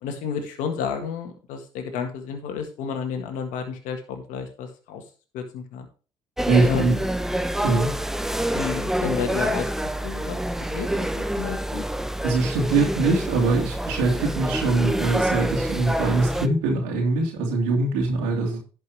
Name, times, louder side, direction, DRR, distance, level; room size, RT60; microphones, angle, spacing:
voice 1, 0.0-5.0 5.3-5.9 6.7-6.8 8.5-9.7 10.0-11.8, left 6 dB, 75° left, 5 dB, 1.8 m, -31 dB
sound 1, 6.4-16.5, right 1 dB, 5° right, 0.9 m, -27 dB
voice 2, 6.5-7.0 7.6-7.9 12.2-18.6, right 3 dB, 85° right, -2 dB, 2.4 m, -22 dB
11.0 x 5.4 x 4.8 m, 0.36 s
hypercardioid pair, 60°, 13 cm